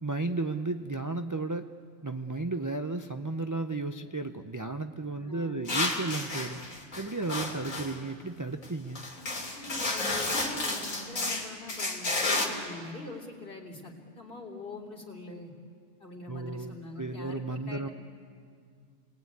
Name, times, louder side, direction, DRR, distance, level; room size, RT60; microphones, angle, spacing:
voice 1, 0.0-1.7 2.0-6.6 7.0-9.0 16.3-17.9, right 3 dB, 25° right, 7 dB, 0.4 m, -34 dB
voice 2, 5.1-5.6 9.2-15.5 16.0-17.9, left 2 dB, 40° left, 0 dB, 3.5 m, -43 dB
sound 1, 5.7-7.9 8.6-8.7 9.0-12.5, left 2 dB, 75° left, 3.2 m, -31 dB
29.0 x 20.0 x 9.6 m, 2.2 s
omnidirectional pair, 1.4 m